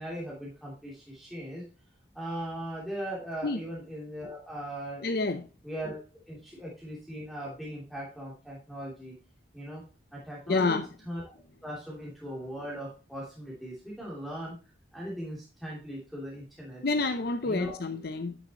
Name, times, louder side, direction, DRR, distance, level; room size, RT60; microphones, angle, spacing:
voice 1, 0.0-1.6 2.1-5.0 5.6-6.0 6.3-9.1 9.5-9.8 10.1-11.2 11.6-14.5 14.9-16.8 17.4-17.8, equal, ahead, 2.9 m, -39 dB
voice 2, 5.0-5.4 10.5-10.9 16.8-18.4, left 3 dB, 55° left, 0.6 m, -28 dB
11.0 x 6.4 x 2.9 m
head